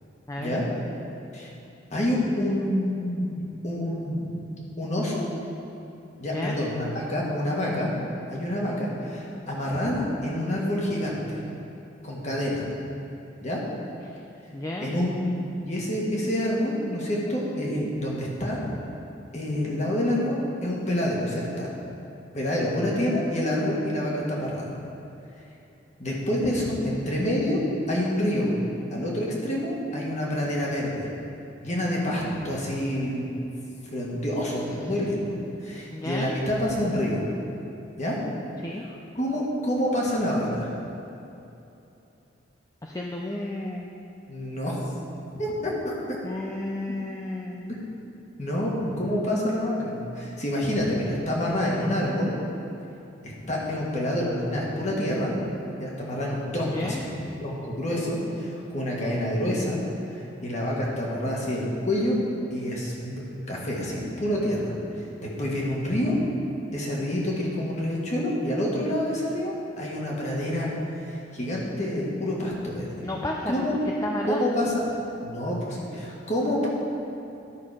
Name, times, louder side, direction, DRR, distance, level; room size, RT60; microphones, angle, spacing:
voice 1, 0.3-0.6 6.3-6.6 14.0-14.2 14.5-15.0 34.6-34.9 35.9-36.4 38.6-38.8 42.8-43.9 46.2-47.7 56.6-57.0 73.0-73.7 74.0-74.4, left 1 dB, 15° left, 0 dB, 0.4 m, -32 dB
voice 2, 1.9-4.4 4.8-5.2 6.2-7.9 8.3-11.4 12.0-12.6 13.4-13.6 14.8-15.1 15.6-18.6 19.3-21.7 22.3-24.7 26.0-27.6 27.9-28.5 28.9-31.1 31.6-33.3 33.9-35.3 35.6-37.2 38.0-38.2 39.2-40.7 44.3-44.8 45.3-46.2 48.4-52.3 53.2-55.3 55.8-59.8 60.1-62.2 62.5-64.7 65.2-66.2 66.7-70.7 71.1-73.0 73.5-73.8 74.3-74.7 75.2-76.7, left 1 dB, 40° left, -4 dB, 1.7 m, -27 dB
11.5 x 6.0 x 4.9 m, 2.9 s
head